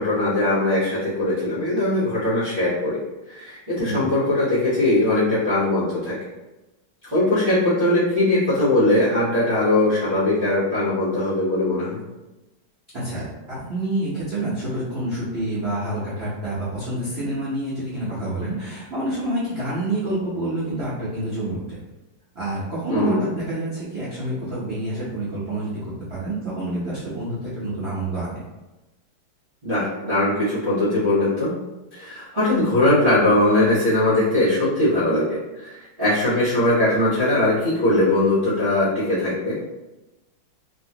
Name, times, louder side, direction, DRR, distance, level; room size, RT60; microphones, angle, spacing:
voice 1, 0.0-3.0 3.3-6.2 7.1-12.0 22.9-23.3 29.6-31.5 31.9-39.6, left 1 dB, 35° right, -12 dB, 0.9 m, -20 dB
voice 2, 3.7-4.1 12.9-21.8 22.3-25.8 26.1-28.4, right 1 dB, 65° right, -10 dB, 0.6 m, -28 dB
3.0 x 2.9 x 2.8 m, 1.1 s
omnidirectional pair, 2.3 m